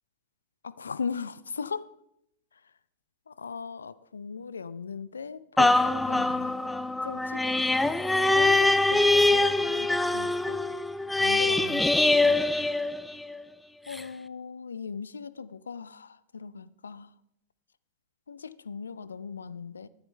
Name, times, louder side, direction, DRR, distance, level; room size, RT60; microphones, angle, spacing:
voice 1, 0.6-1.9 3.4-6.6 7.0-7.8 8.4-10.6 11.2-12.4 13.9-17.1 18.3-19.9, left 5 dB, 75° left, 0.4 m, -38 dB
sound 1, 5.6-13.4 13.9-14.0, left 2 dB, 5° left, 0.5 m, -24 dB
14.5 x 12.0 x 3.2 m
figure-of-eight pair, 90°, 0 cm